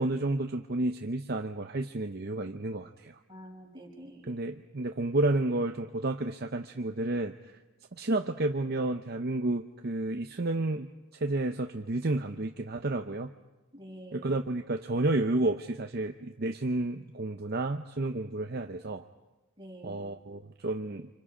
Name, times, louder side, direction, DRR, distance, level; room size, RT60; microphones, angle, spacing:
voice 1, 0.0-3.2 4.3-7.5 7.9-13.3 14.1-19.0 19.8-21.1, right 2 dB, 45° right, 5 dB, 0.7 m, -31 dB
voice 2, 3.3-4.4 13.7-14.3 19.6-20.0, right 1 dB, 20° right, -2 dB, 4.9 m, -47 dB
30.0 x 26.5 x 5.0 m, 1.1 s
head